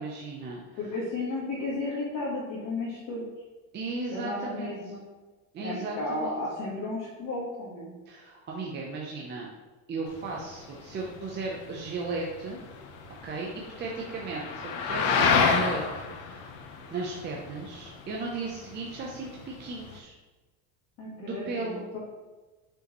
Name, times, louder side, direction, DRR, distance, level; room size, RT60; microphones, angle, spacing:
voice 1, 0.0-0.8 3.7-4.8 5.5-6.4 8.1-9.5 9.9-12.6 13.1-13.5 13.8-15.8 16.1-16.5 16.9-20.1 21.2-22.0, right 3 dB, 25° right, -2 dB, 0.7 m, -36 dB
voice 2, 0.8-3.2 4.1-5.0 5.6-7.9 21.0-22.0, left 2 dB, 50° left, -7 dB, 1.5 m, -33 dB
sound 1, 10.1-20.0, left 5 dB, 65° left, 0.8 m, -30 dB
6.3 x 4.9 x 3.0 m, 1.2 s
cardioid pair, 150°, 38 cm